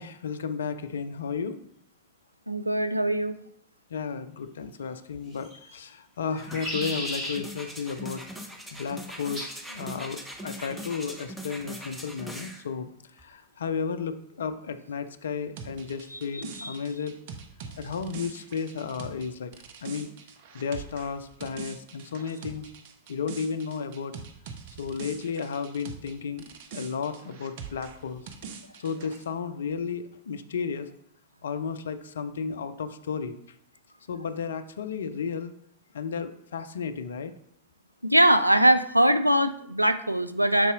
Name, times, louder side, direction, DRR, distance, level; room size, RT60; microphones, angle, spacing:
voice 1, 0.0-1.6 3.9-8.2 8.7-12.9 13.2-17.2 17.8-19.5 19.8-20.1 20.5-22.7 23.1-24.1 24.8-26.4 26.7-28.2 28.8-30.9 31.4-33.4 34.1-35.5 35.9-37.3, left 6 dB, 65° left, 11 dB, 0.5 m, -33 dB
voice 2, 2.5-3.4 16.1-16.8 38.0-40.7, right 1 dB, 90° right, 10 dB, 0.4 m, -22 dB
sound 1, 5.3-5.8 6.3-7.4 9.3-9.6 10.5-10.9, left 1 dB, 25° right, 2.7 m, -35 dB
sound 2, 6.4-12.6 13.2-13.3, equal, 5° right, 0.9 m, -41 dB
sound 3, 15.6-26.1 26.4-29.2, right 6 dB, 50° right, 0.7 m, -43 dB
6.6 x 4.1 x 3.7 m, 0.71 s
figure-of-eight pair, 90°, 0 cm